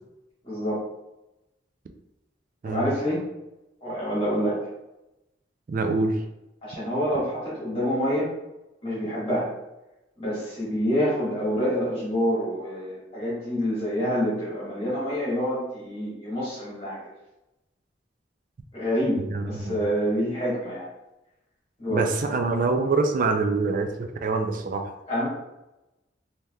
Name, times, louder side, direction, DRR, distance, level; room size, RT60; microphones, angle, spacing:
voice 1, 0.4-0.8 2.6-3.2 3.8-4.6 6.6-8.3 8.8-9.5 10.2-17.0 18.7-19.2 19.5-20.9 21.8-22.0 25.1-25.3, equal, 30° left, -9 dB, 1.3 m, -27 dB
voice 2, 5.7-6.2 19.2-19.8 21.9-24.9, right 3 dB, 45° right, 5 dB, 0.3 m, -25 dB
3.4 x 2.7 x 2.2 m, 0.93 s
head